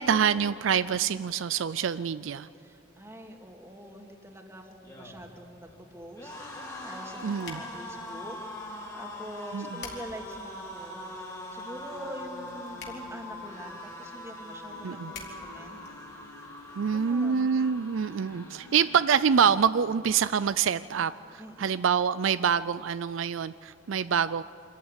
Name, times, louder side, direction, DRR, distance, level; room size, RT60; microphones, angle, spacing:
voice 1, 0.0-2.5 7.2-7.6 9.5-9.8 14.8-15.1 16.8-24.4, right 7 dB, 70° right, 15 dB, 0.4 m, -26 dB
voice 2, 2.5-15.8 16.9-17.5 21.4-21.7, equal, 15° right, 3 dB, 2.2 m, -45 dB
sound 1, 4.7-19.9 20.3-20.5 20.7-21.5, left 1 dB, 15° left, 3.0 m, -43 dB
sound 2, 6.7-16.6, left 5 dB, 55° left, 3.6 m, -51 dB
sound 3, 14.7-20.1, left 3 dB, 85° left, 0.8 m, -52 dB
25.5 x 14.5 x 9.8 m, 2.9 s
head